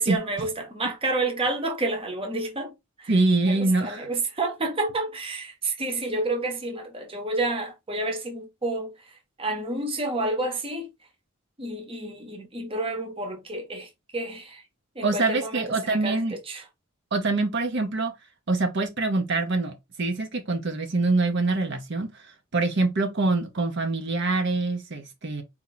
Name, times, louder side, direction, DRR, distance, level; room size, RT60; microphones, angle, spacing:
voice 1, 0.0-2.7 3.0-3.1 3.6-8.9 9.4-10.9 11.6-13.9 14.1-14.6 14.9-16.2 16.5-16.6, right 2 dB, 25° right, 1.0 m, -29 dB
voice 2, 3.1-4.1 15.0-16.4 17.1-18.1 18.5-25.4, right 3 dB, 55° right, 0.8 m, -25 dB
4.3 x 2.8 x 4.0 m
head